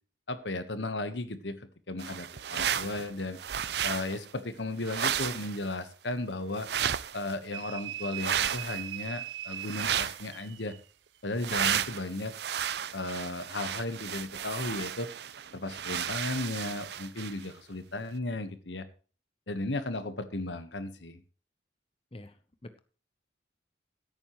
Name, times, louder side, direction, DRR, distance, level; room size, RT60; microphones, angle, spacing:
voice 1, 0.3-3.4 3.8-6.7 7.1-10.8 11.2-12.3 12.9-15.1 15.5-18.8 19.5-21.2, left 2 dB, 75° left, 11 dB, 1.3 m, -35 dB
sound 1, 2.0-3.1 3.3-4.2 4.8-5.7 6.6-7.3 8.2-8.8 9.6-10.3 11.4-17.4, right 9 dB, 60° right, 0.5 m, -33 dB
sound 2, 7.5-10.8, right 11 dB, 85° right, 0.8 m, -40 dB
voice 2, 22.1-22.8, left 1 dB, 30° left, 10 dB, 0.8 m, -48 dB
16.0 x 9.1 x 3.1 m, 0.37 s
head